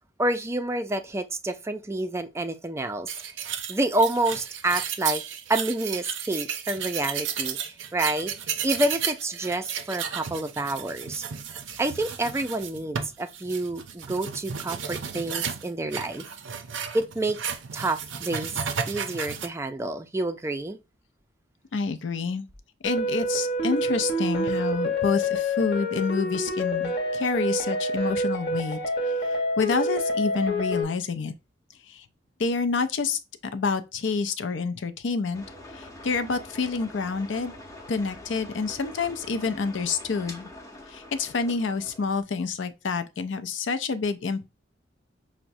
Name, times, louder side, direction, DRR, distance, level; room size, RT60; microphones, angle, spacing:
voice 1, 0.2-3.1 3.7-5.2 5.5-7.6 7.9-8.3 8.6-11.2 11.8-16.2 16.9-17.4 17.7-18.5 18.9-20.8, right 2 dB, 15° right, 0.4 m, -28 dB
sound 1, 3.1-19.5, right 7 dB, 90° right, 0.5 m, -33 dB
voice 2, 21.7-22.4 22.8-28.8 29.6-31.3 31.9-32.0 32.4-33.2 33.5-35.4 35.7-37.5 37.9-40.5 40.9-44.5, left 4 dB, 80° left, 0.5 m, -28 dB
sound 2, 22.8-30.8, equal, 60° left, 0.9 m, -27 dB
sound 3, 35.3-42.2, left 1 dB, 15° left, 0.8 m, -44 dB
5.8 x 2.1 x 2.6 m
head